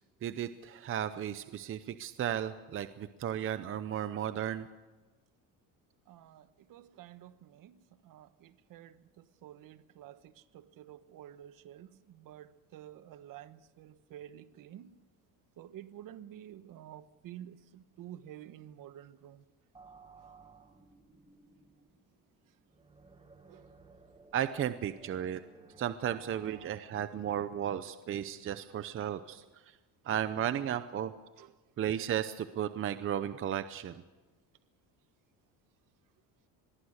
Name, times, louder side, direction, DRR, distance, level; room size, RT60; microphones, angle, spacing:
voice 1, 0.2-4.7 24.3-25.4 25.8-29.4 30.0-31.1 31.8-33.9, right 10 dB, 35° right, 12 dB, 0.7 m, -34 dB
voice 2, 6.1-14.9 15.6-19.4 23.5-23.7 31.4-31.6, right 11 dB, 55° right, 12 dB, 1.2 m, -51 dB
sound 1, 19.7-26.7, right 4 dB, 15° right, 1.7 m, -58 dB
24.5 x 21.5 x 6.5 m, 1.2 s
cardioid pair, 160°, 38 cm